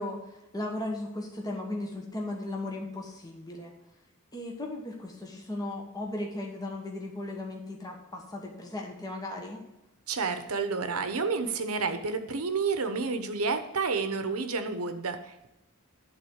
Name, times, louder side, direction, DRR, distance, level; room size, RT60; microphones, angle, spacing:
voice 1, 0.0-3.7 4.3-9.6, left 1 dB, 20° left, 0 dB, 1.3 m, -36 dB
voice 2, 10.1-15.5, right 4 dB, 75° right, 8 dB, 0.9 m, -30 dB
11.0 x 3.9 x 6.5 m, 0.94 s
head